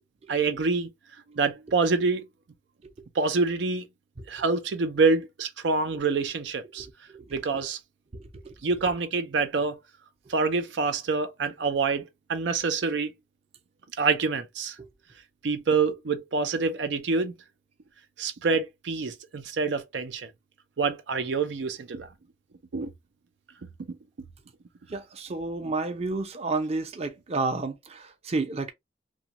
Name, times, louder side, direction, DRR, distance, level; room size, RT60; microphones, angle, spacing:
voice 1, 0.3-0.9 1.3-2.3 3.1-3.9 4.3-6.9 7.3-7.8 8.6-9.8 10.3-13.1 14.0-14.8 15.4-17.3 18.2-20.3 20.8-22.1 22.7-22.9, right 4 dB, 80° right, 0.5 m, -26 dB
voice 2, 24.9-28.7, right 3 dB, 35° right, 0.6 m, -30 dB
2.9 x 2.3 x 2.8 m
head